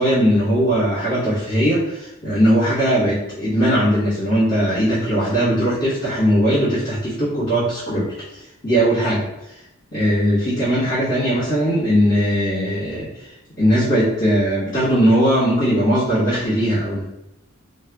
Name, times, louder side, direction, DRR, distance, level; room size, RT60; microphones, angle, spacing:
voice 1, 0.0-9.6 9.9-13.3 13.6-17.0, equal, 40° left, -13 dB, 1.3 m, -19 dB
3.4 x 2.0 x 2.3 m, 0.89 s
head